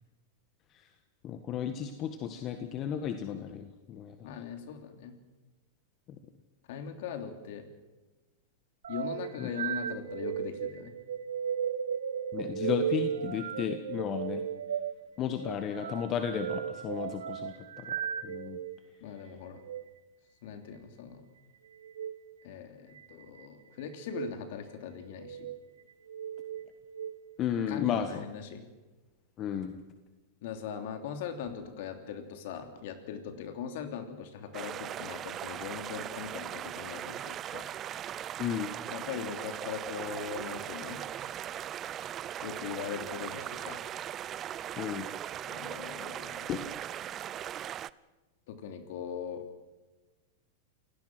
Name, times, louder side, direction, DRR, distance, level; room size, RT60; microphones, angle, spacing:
voice 1, 1.2-4.2 9.4-9.5 12.3-14.4 15.2-18.0 18.2-18.6 27.4-28.2 29.4-29.8 38.4-38.7 44.8-45.1 46.5-46.7, left 9 dB, 35° left, 8 dB, 1.6 m, -33 dB
voice 2, 4.2-5.1 6.7-7.7 8.9-10.9 19.0-19.6 20.4-21.2 22.4-25.5 27.7-28.6 30.4-37.7 38.9-41.0 42.4-43.8 45.4-46.5 48.5-49.4, left 7 dB, 60° left, 7 dB, 3.1 m, -40 dB
sound 1, 8.8-18.8 19.5-19.8 21.8-22.1 23.0-23.5 24.0-24.3 25.1-25.6 26.1-27.1, right 8 dB, 75° right, 1.2 m, -36 dB
sound 2, 34.5-47.9, right 11 dB, 30° right, 0.6 m, -39 dB
28.0 x 17.0 x 6.2 m, 1.2 s
hypercardioid pair, 105°, 0 cm